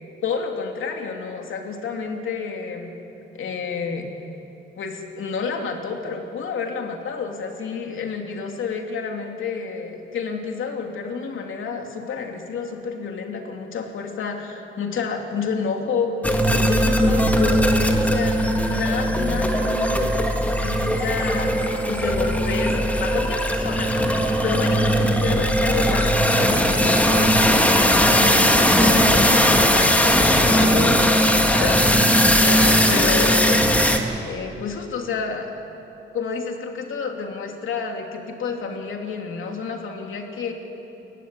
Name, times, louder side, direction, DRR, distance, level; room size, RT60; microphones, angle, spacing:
voice 1, 0.2-2.9 3.3-4.1 4.8-16.2 16.5-18.4 18.7-21.6 21.9-31.8 32.4-33.6 34.3-35.5 36.1-40.5, left 5 dB, 75° left, 2 dB, 3.1 m, -29 dB
sound 1, 16.2-34.0, equal, 5° left, 1.9 m, -19 dB
29.0 x 15.0 x 9.9 m, 2.9 s
cardioid pair, 120°, 21 cm